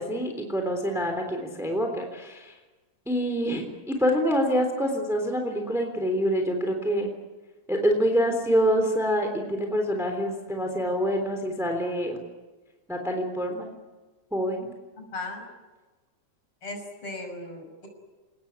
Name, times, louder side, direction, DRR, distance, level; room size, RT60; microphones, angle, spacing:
voice 1, 0.0-2.5 3.1-7.1 7.7-12.2 12.9-13.7 14.3-14.7, equal, ahead, 4 dB, 3.0 m, -26 dB
voice 2, 15.0-15.4 16.6-17.9, left 2 dB, 40° left, 3 dB, 6.8 m, -37 dB
28.0 x 19.5 x 9.7 m, 1.2 s
omnidirectional pair, 4.0 m